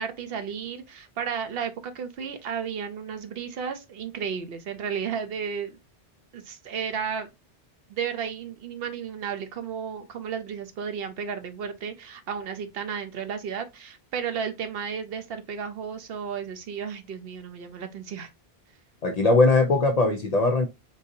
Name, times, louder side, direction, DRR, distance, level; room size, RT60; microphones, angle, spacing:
voice 1, 0.0-5.8 6.3-7.3 7.9-18.3, right 7 dB, 65° right, 0.8 m, -33 dB
voice 2, 19.0-20.7, left 3 dB, 55° left, 0.4 m, -20 dB
3.8 x 2.6 x 2.6 m
omnidirectional pair, 1.1 m